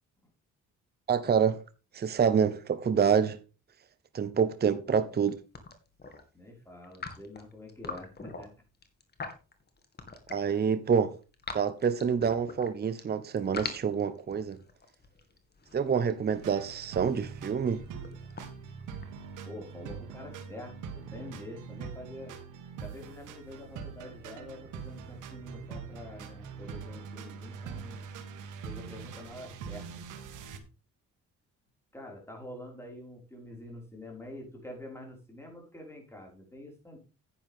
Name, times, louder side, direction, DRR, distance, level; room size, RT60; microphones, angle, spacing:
voice 1, 1.1-1.6 1.9-3.4 4.1-5.3 10.3-11.1 11.5-14.6 15.7-17.8, right 6 dB, 35° right, 0.8 m, -27 dB
voice 2, 4.9-5.3 6.3-8.5 19.4-22.3 22.7-28.0 28.6-29.9 31.9-37.0, left 1 dB, 10° left, 5.3 m, -46 dB
sound 1, 5.1-6.2 6.8-10.5 10.9-13.0 13.4-19.4, left 4 dB, 35° left, 2.2 m, -43 dB
sound 2, 16.3-30.6, right 6 dB, 85° right, 1.7 m, -43 dB
10.0 x 9.6 x 3.6 m
cardioid pair, 90°, 30 cm